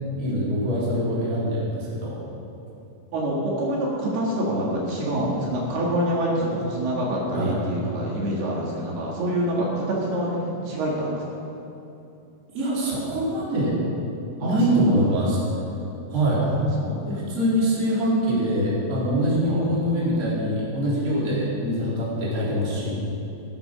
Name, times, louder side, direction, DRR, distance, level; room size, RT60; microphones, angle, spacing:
voice 1, 0.2-2.2 7.3-7.6 12.5-13.7 14.4-15.4 16.1-16.4 17.1-22.9, equal, 20° right, -7 dB, 3.4 m, -24 dB
voice 2, 3.1-11.4 14.4-15.0 16.4-17.1 19.5-19.7, right 1 dB, 70° right, -4 dB, 3.7 m, -26 dB
14.5 x 9.9 x 6.3 m, 2.8 s
omnidirectional pair, 4.9 m